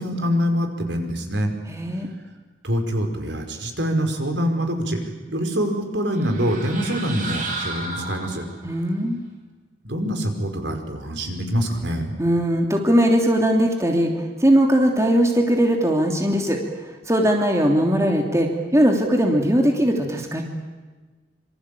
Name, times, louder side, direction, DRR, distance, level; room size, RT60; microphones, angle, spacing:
voice 1, 0.0-1.5 2.6-5.0 5.3-8.4 9.8-12.2, equal, 75° right, 5 dB, 5.3 m, -25 dB
voice 2, 1.7-2.1 8.6-9.2 12.2-14.1 14.4-16.6 17.1-20.4, equal, 15° right, 2 dB, 3.2 m, -19 dB
sound 1, 6.1-8.8, right 3 dB, 45° right, 5.8 m, -33 dB
26.5 x 26.0 x 8.6 m, 1.3 s
head